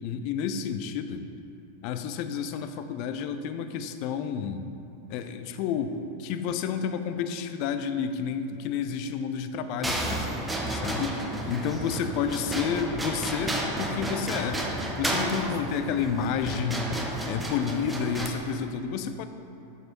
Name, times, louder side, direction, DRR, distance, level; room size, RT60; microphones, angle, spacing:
voice 1, 0.0-1.3 1.8-4.6 5.1-14.6 15.0-16.9 17.3-19.3, left 7 dB, 45° left, 9 dB, 0.3 m, -30 dB
sound 1, 9.8-18.3, right 1 dB, 10° right, 0.6 m, -31 dB
6.6 x 6.0 x 3.0 m, 2.8 s
figure-of-eight pair, 90°, 0 cm